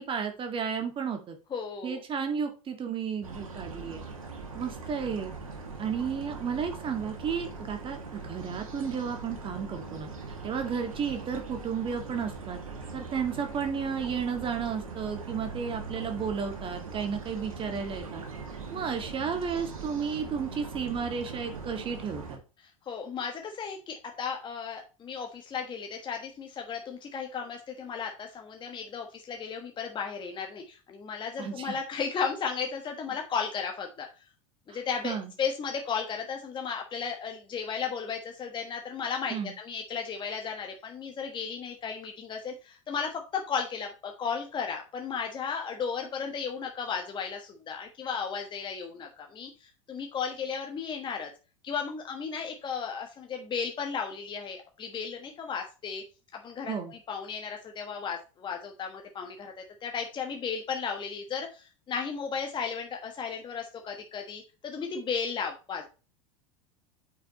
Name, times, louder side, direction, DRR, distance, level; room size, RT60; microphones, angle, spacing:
voice 1, 0.0-1.4 1.8-4.0 4.5-5.3 5.8-10.1 10.4-12.6 12.9-18.3 18.7-22.4 31.4-31.8 35.0-35.3 39.3-39.5 56.7-56.9, right 6 dB, 30° right, 5 dB, 1.9 m, -33 dB
voice 2, 1.5-2.0 22.6-34.1 34.7-51.3 51.6-56.0 56.3-56.7 57.1-65.8, left 6 dB, 25° left, 3 dB, 1.3 m, -35 dB
sound 1, 3.2-22.4, right 4 dB, 75° right, 1.8 m, -41 dB
8.8 x 5.6 x 3.0 m, 0.33 s
figure-of-eight pair, 80°, 18 cm